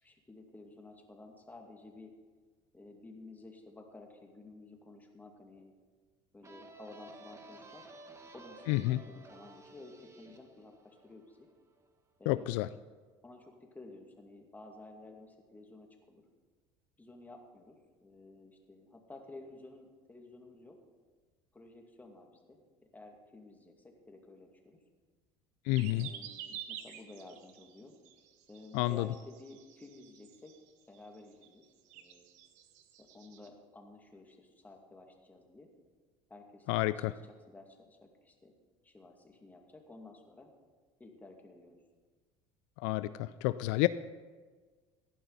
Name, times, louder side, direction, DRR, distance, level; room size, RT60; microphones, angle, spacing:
voice 1, 0.0-2.1 2.7-5.7 6.3-7.9 8.3-11.5 12.2-12.6 13.2-16.2 17.0-20.8 21.5-22.6 22.9-24.8 25.9-27.9 28.5-30.5 30.9-31.6 31.9-32.3 33.0-35.7 36.3-37.2 37.5-38.5 38.8-40.5 41.0-41.8, left 2 dB, 15° left, 2 dB, 2.2 m, -53 dB
sound 1, 6.4-11.9, right 2 dB, 20° right, 1.4 m, -54 dB
voice 2, 8.7-9.0 12.3-12.7 25.7-26.1 28.7-29.1 36.7-37.1 42.8-43.9, left 18 dB, 75° left, 14 dB, 0.4 m, -29 dB
sound 2, 25.7-30.7 30.9-31.1 31.4-31.6 31.9-33.5, right 10 dB, 70° right, 1.2 m, -49 dB
16.0 x 11.0 x 4.1 m, 1.4 s
supercardioid pair, 100°, 13 cm